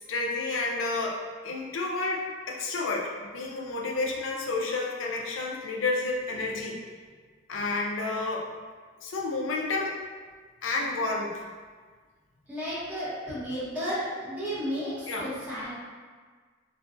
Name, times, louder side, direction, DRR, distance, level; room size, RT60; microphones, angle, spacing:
voice 1, 0.1-6.8 7.5-8.4 9.0-10.0 10.6-11.4 15.1-15.3, left 3 dB, 75° left, -1 dB, 0.5 m, -30 dB
voice 2, 6.3-6.6 7.5-7.7 12.5-15.8, equal, 10° right, -12 dB, 1.0 m, -33 dB
3.8 x 2.3 x 2.5 m, 1.5 s
head